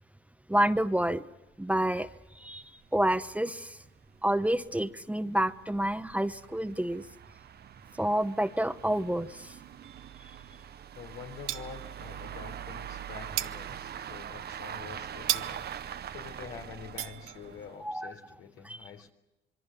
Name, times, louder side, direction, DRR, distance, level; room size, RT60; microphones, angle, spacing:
voice 1, 0.5-1.2 1.6-2.1 2.4-2.6 2.9-3.8 4.2-7.0 8.0-9.5 17.8-18.1 18.6-18.8, right 1 dB, 5° right, 11 dB, 0.9 m, -28 dB
sound 1, 1.5-1.6 1.9-2.0 2.4-2.5 2.8-2.9 3.6-17.9, right 9 dB, 55° right, 0.8 m, -44 dB
sound 2, 9.8-10.9 11.2-12.3 12.6-17.8, right 13 dB, 85° right, 0.8 m, -38 dB
voice 2, 11.0-15.7 16.1-19.1, left 7 dB, 90° left, 4 dB, 3.6 m, -46 dB
26.5 x 23.0 x 7.1 m, 1.0 s
cardioid pair, 90°, 20 cm